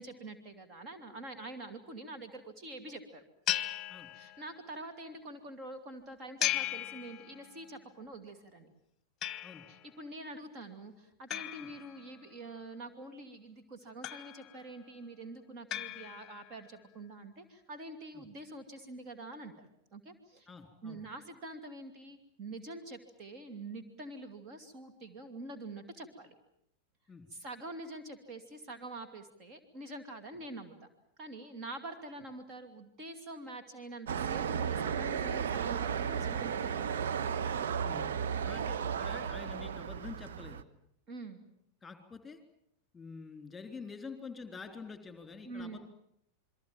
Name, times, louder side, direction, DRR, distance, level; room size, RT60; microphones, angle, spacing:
voice 1, 0.0-3.2 4.1-8.7 9.7-19.7 19.9-20.5 20.8-26.4 27.3-30.9 31.2-36.9 41.1-41.4 45.4-45.8, right 2 dB, 35° right, 7 dB, 2.7 m, -46 dB
sound 1, 3.5-4.7 6.4-7.7 9.2-9.9 11.3-12.5 14.0-14.7 15.7-16.6, left 12 dB, 30° left, 1.2 m, -37 dB
voice 2, 20.5-21.0 27.1-27.3 37.8-38.1 38.4-40.7 41.8-42.4 42.9-45.8, left 5 dB, 10° left, 7 dB, 3.9 m, -47 dB
sound 2, 34.1-40.6, right 7 dB, 60° right, 1.1 m, -34 dB
28.5 x 22.5 x 7.5 m, 0.71 s
figure-of-eight pair, 90°, 0 cm